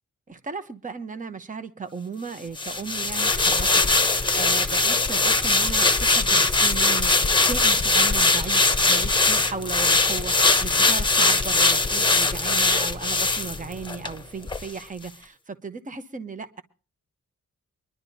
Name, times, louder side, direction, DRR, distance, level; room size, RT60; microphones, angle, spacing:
voice 1, 0.3-16.6, right 5 dB, 25° right, 10 dB, 1.0 m, -35 dB
sound 1, 2.6-14.1 14.5-14.6, left 3 dB, 15° left, 1.0 m, -21 dB
24.0 x 11.0 x 2.8 m, 0.36 s
wide cardioid pair, 100°, 29 cm